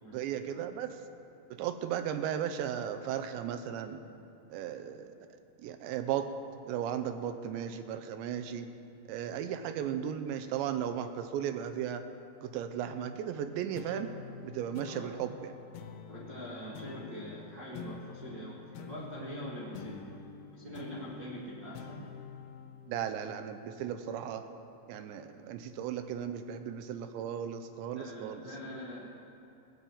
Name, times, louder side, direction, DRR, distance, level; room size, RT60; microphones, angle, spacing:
voice 1, 0.1-1.0 1.6-4.0 4.5-5.1 5.6-6.3 6.7-8.7 9.1-12.0 12.4-14.1 14.4-15.5 22.9-24.4 24.9-28.4, right 9 dB, 85° right, 9 dB, 2.9 m, -35 dB
sound 1, 13.8-24.6, left 7 dB, 80° left, 2.4 m, -48 dB
voice 2, 14.8-15.3 16.1-20.1 20.5-22.1 27.9-29.1, equal, 70° right, -6 dB, 1.0 m, -43 dB
18.5 x 6.2 x 8.5 m, 2.9 s
omnidirectional pair, 5.1 m